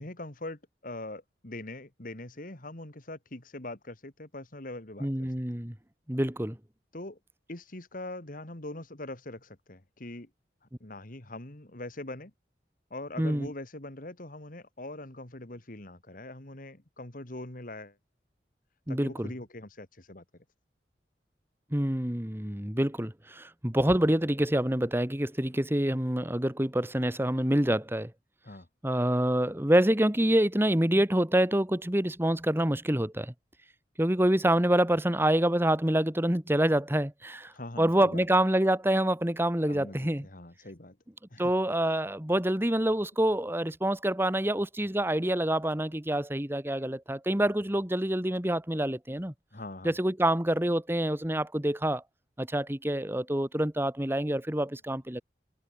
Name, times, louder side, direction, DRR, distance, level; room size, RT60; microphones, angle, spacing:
voice 1, 0.0-5.3 6.9-7.2 7.5-10.3 10.8-12.3 12.9-18.0 18.9-20.2 28.4-28.7 37.5-38.3 39.7-41.0 41.3-41.4 49.5-50.0, left 2 dB, 50° left, 2.3 m, -42 dB
voice 2, 5.0-5.7 6.1-6.6 13.2-13.5 18.9-19.3 21.7-28.1 28.8-33.3 34.0-37.5 37.8-40.3 41.4-49.3 49.8-52.0 52.4-55.2, right 1 dB, 15° right, 1.6 m, -26 dB
head